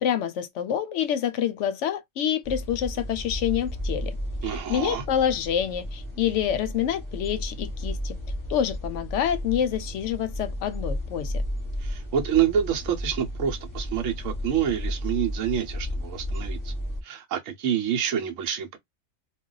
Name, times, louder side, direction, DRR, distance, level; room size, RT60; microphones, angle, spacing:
voice 1, 0.0-4.2 4.4-8.2 8.5-11.3, left 9 dB, 70° left, 0.8 m, -27 dB
sound 1, 2.4-17.0, equal, 20° left, 0.7 m, -33 dB
voice 2, 4.4-5.0 11.8-16.7 17.0-18.8, right 9 dB, 75° right, 1.0 m, -27 dB
2.3 x 2.2 x 3.7 m
omnidirectional pair, 1.4 m